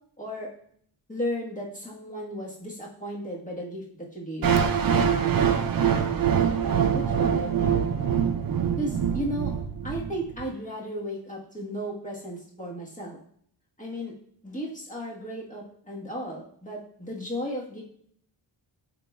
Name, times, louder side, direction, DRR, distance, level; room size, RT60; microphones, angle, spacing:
voice 1, 0.2-0.5 1.1-3.8 4.1-4.5 6.9-7.7 8.8-9.5 9.8-13.2 13.8-14.1 14.4-17.8, equal, 15° left, -5 dB, 1.4 m, -34 dB
sound 1, 4.4-10.4, right 7 dB, 50° right, 0.5 m, -24 dB
10.5 x 3.9 x 2.3 m, 0.63 s
wide cardioid pair, 165°, 45 cm